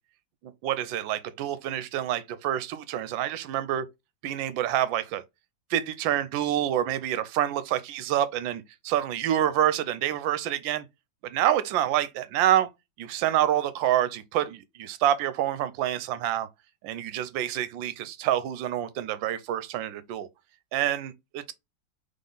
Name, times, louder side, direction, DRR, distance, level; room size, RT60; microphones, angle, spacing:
voice 1, 0.4-3.9 4.2-5.2 5.7-10.8 11.2-12.7 13.0-16.5 16.8-20.3 20.7-21.5, right 11 dB, 80° right, 1.3 m, -27 dB
3.8 x 3.4 x 3.8 m
omnidirectional pair, 2.0 m